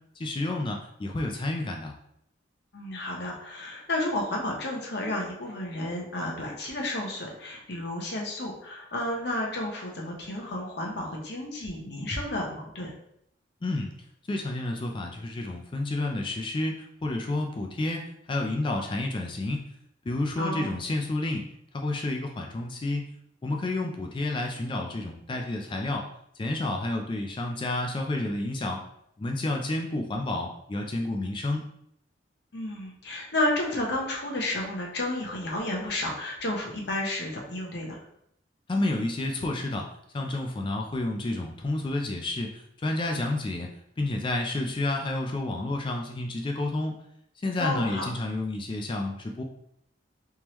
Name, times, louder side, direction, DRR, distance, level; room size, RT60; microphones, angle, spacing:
voice 1, 0.2-2.0 13.6-13.9 14.3-18.0 18.3-19.7 20.1-21.4 21.7-23.1 23.4-26.1 26.4-28.8 29.2-31.7 38.7-39.9 40.1-43.7 44.0-47.0 47.4-49.4, left 2 dB, 25° left, 2 dB, 0.3 m, -30 dB
voice 2, 2.7-12.9 20.4-20.7 32.5-38.0 47.6-48.1, left 1 dB, 60° left, -1 dB, 0.9 m, -31 dB
3.5 x 3.0 x 3.0 m, 0.74 s
head